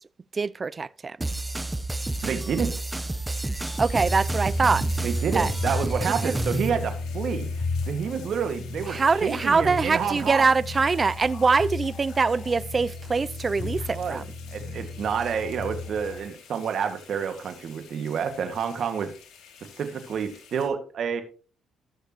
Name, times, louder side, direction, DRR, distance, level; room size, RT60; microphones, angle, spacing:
voice 1, 0.3-1.2 3.8-4.9 5.3-5.5 6.2-6.4 8.9-14.2, right 4 dB, 35° right, 0.4 m, -23 dB
sound 1, 1.2-6.7, right 2 dB, 10° right, 0.9 m, -29 dB
voice 2, 2.2-2.7 5.0-10.5 13.9-19.1 19.8-21.2, right 7 dB, 60° right, 1.9 m, -29 dB
sound 2, 3.6-20.7, left 7 dB, 80° left, 2.9 m, -50 dB
sound 3, 3.8-16.3, left 3 dB, 35° left, 5.1 m, -35 dB
19.0 x 6.7 x 3.0 m
cardioid pair, 90°, 0 cm